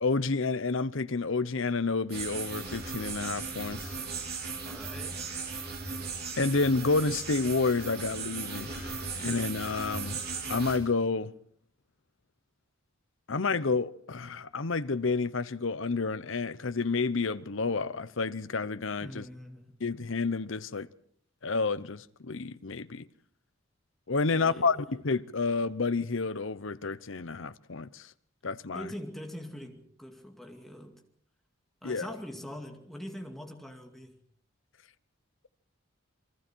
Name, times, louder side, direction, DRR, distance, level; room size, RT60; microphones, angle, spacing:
voice 1, 0.0-4.0 6.4-10.2 10.5-11.3 13.3-19.3 19.8-20.9 21.4-23.1 24.1-28.1 28.4-28.9 31.8-32.1, left 4 dB, 65° left, 0.8 m, -30 dB
sound 1, 2.1-10.8, right 4 dB, 50° right, 4.0 m, -37 dB
voice 2, 4.6-5.3 19.0-19.8 24.3-24.8 28.7-31.0 31.8-34.2, equal, ahead, 2.3 m, -43 dB
28.0 x 22.5 x 4.6 m
head